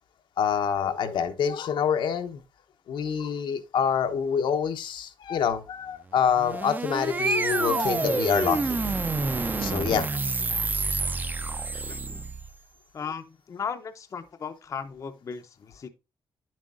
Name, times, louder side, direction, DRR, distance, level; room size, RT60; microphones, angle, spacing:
voice 1, 0.4-2.4 2.9-8.8 9.6-10.2 10.8-10.9, left 7 dB, 80° left, 0.8 m, -26 dB
sound 1, 6.2-12.6, right 3 dB, 20° right, 0.4 m, -28 dB
voice 2, 11.9-12.3 12.9-15.9, left 6 dB, 40° left, 0.6 m, -36 dB
9.5 x 7.4 x 2.5 m
cardioid pair, 130°, 8 cm